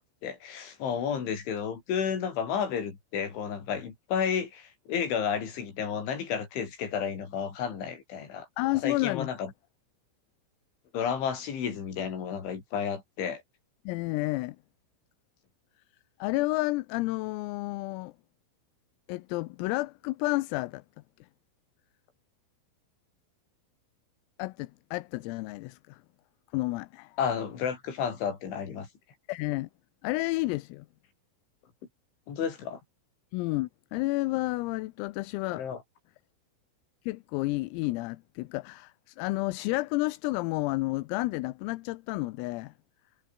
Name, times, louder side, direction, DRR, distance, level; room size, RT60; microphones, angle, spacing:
voice 1, 0.0-8.5 8.8-9.5 10.9-13.4 27.2-28.9 32.3-32.8 35.5-35.8, left 7 dB, 65° left, 6.9 m, -32 dB
voice 2, 8.6-9.3 13.9-14.6 16.2-18.1 19.1-20.8 24.4-26.0 26.5-27.2 29.3-29.7 30.0-30.9 33.3-35.7 37.1-42.7, left 21 dB, 85° left, 3.5 m, -31 dB
omnidirectional pair, 6.0 m